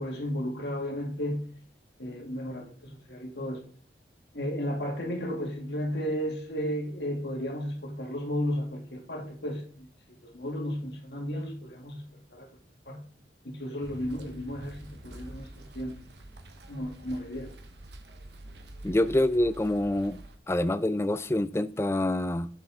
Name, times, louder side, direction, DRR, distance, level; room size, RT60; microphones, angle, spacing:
voice 1, 0.0-1.5 2.0-3.6 4.3-9.9 10.2-12.0 12.3-12.5 12.9-13.0 13.4-16.0 16.7-17.5, equal, 70° left, 2.3 m, -34 dB
sound 1, 13.8-20.4, right 1 dB, 75° right, 1.1 m, -47 dB
voice 2, 18.8-20.2 20.5-22.5, left 1 dB, 15° left, 0.4 m, -26 dB
7.5 x 7.2 x 3.6 m
head